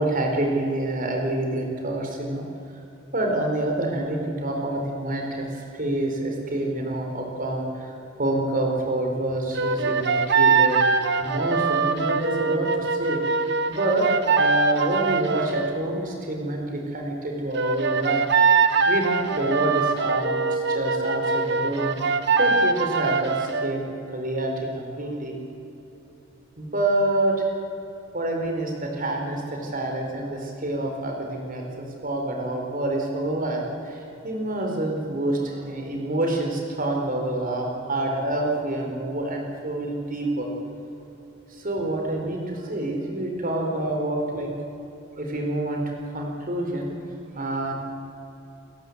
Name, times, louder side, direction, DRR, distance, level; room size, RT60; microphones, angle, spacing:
voice 1, 0.0-2.4 3.1-10.8 11.2-13.2 13.7-18.2 18.9-22.0 22.4-23.8 24.1-25.4 26.6-27.4 28.1-40.5 41.5-44.5 45.2-46.9 47.3-47.7, right 1 dB, 45° right, 1 dB, 4.5 m, -27 dB
sound 1, 9.5-15.7 17.5-23.7, right 4 dB, 60° right, 1.3 m, -22 dB
30.0 x 15.5 x 8.2 m, 2.9 s
head